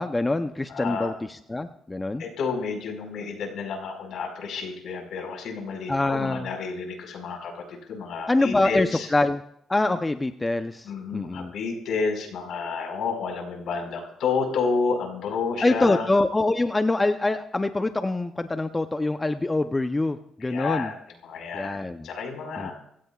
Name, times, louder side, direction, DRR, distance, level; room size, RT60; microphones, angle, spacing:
voice 1, 0.0-2.2 5.9-6.5 8.3-9.4 9.7-11.5 15.6-20.9 21.5-22.1 22.6-22.7, left 2 dB, 20° left, 8 dB, 0.7 m, -25 dB
voice 2, 0.7-1.1 2.2-9.1 10.8-16.1 20.4-21.0 21.2-21.8 22.0-22.7, left 5 dB, 75° left, 3 dB, 5.0 m, -30 dB
25.5 x 16.0 x 2.4 m, 0.72 s
cardioid pair, 90°, 0 cm